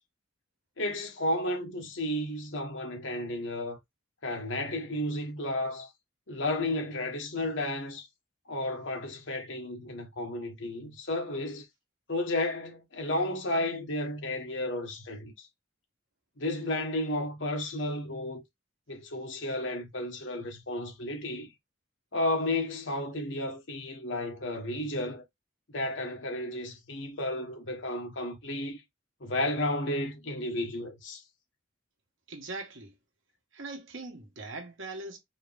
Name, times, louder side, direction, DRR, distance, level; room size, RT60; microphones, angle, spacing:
voice 1, 0.8-3.8 4.2-5.9 6.3-8.1 8.5-11.7 12.1-15.5 16.4-18.4 18.9-21.5 22.1-25.2 25.7-28.8 29.2-31.2, left 1 dB, 65° left, 1.3 m, -32 dB
voice 2, 32.3-32.9 33.5-35.2, right 3 dB, 70° right, 1.5 m, -41 dB
4.7 x 2.9 x 3.4 m
head